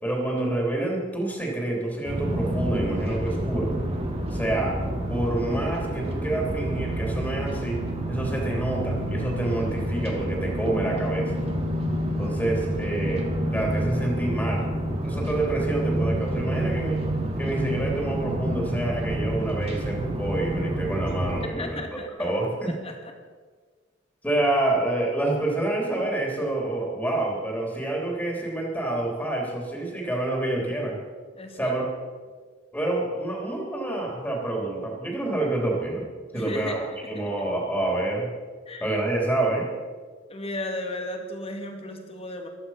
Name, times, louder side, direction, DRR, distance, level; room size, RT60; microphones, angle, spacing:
voice 1, 0.0-3.7 4.3-4.8 5.1-7.8 8.1-11.4 12.2-14.7 15.0-17.0 17.4-21.8 22.2-22.7 24.2-31.0 31.5-31.9 32.7-36.0 36.3-38.3 38.8-39.7, right 2 dB, 10° left, -1 dB, 3.4 m, -27 dB
sound 1, 2.1-21.5, right 1 dB, 35° right, 2.3 m, -28 dB
voice 2, 21.5-22.3 22.7-23.1 31.3-31.7 36.3-36.8 37.1-37.2 38.7-38.9 40.3-42.5, left 2 dB, 30° left, 4 dB, 2.1 m, -35 dB
15.0 x 12.5 x 5.8 m, 1.5 s
head